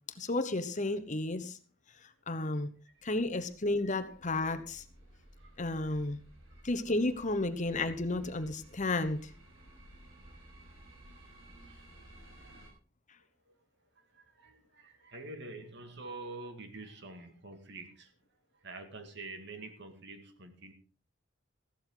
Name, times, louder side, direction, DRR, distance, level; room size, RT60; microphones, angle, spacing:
voice 1, 0.2-1.6 2.3-2.7 3.0-4.8 5.6-6.2 6.6-9.3, left 2 dB, 40° left, 10 dB, 1.1 m, -32 dB
sound 1, 3.0-12.7, right 1 dB, 85° right, 5.9 m, -56 dB
voice 2, 14.4-18.1 18.6-20.7, right 2 dB, 60° right, 6 dB, 2.0 m, -46 dB
15.0 x 12.0 x 3.9 m, 0.38 s
head